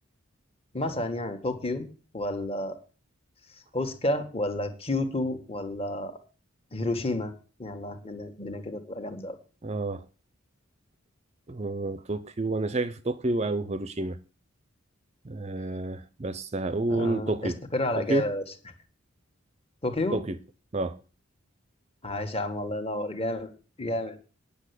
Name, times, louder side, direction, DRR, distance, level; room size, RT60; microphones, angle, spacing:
voice 1, 0.7-1.9 2.1-2.8 3.7-6.2 6.7-7.3 7.6-9.4 16.9-18.4 19.8-20.2 22.0-23.5 23.8-24.2, left 1 dB, 30° left, 1.7 m, -30 dB
voice 2, 9.6-10.0 11.5-14.2 15.2-17.6 18.0-18.3 20.1-20.4 20.7-21.0, right 2 dB, 30° right, 0.6 m, -29 dB
9.7 x 6.9 x 8.3 m
head